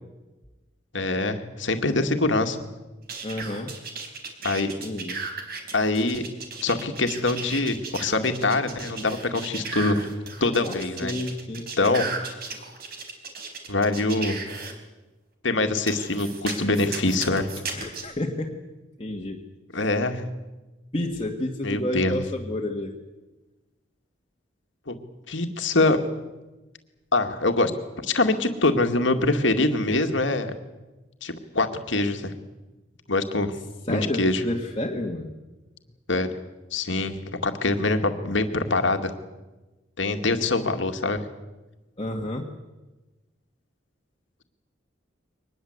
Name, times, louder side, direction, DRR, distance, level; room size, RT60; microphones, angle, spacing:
voice 1, 0.9-2.6 4.4-4.7 5.7-6.3 6.6-10.1 10.4-11.1 11.8-12.4 13.7-14.4 15.4-17.5 19.7-20.2 21.6-22.2 24.9-25.0 25.3-26.0 27.1-27.7 28.0-30.5 31.2-32.3 33.1-33.5 33.9-34.4 36.1-36.3 36.7-37.2 37.4-39.1 40.0-41.2, left 2 dB, 70° left, 6 dB, 2.2 m, -24 dB
sound 1, 3.1-14.7 15.9-18.0, right 4 dB, 50° right, 4.0 m, -35 dB
voice 2, 3.2-3.7 4.8-5.2 10.6-10.7 11.0-11.7 17.7-18.6 19.0-19.4 20.9-23.0 33.9-35.4 42.0-42.5, left 1 dB, 30° left, -1 dB, 1.9 m, -30 dB
23.5 x 20.0 x 8.1 m, 1.1 s
head